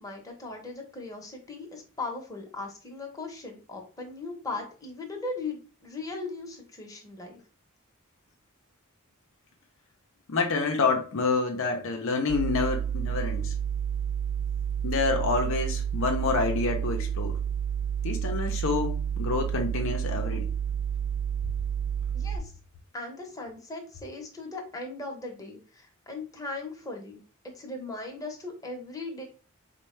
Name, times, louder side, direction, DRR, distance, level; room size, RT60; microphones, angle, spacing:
voice 1, 0.0-7.4 22.1-22.5 22.9-29.2, left 3 dB, 15° left, 0.8 m, -38 dB
voice 2, 10.3-13.5 14.8-17.4 18.0-20.5, left 4 dB, 65° left, 0.5 m, -28 dB
sound 1, 12.3-22.4, right 8 dB, 75° right, 0.4 m, -30 dB
4.3 x 2.1 x 3.1 m
head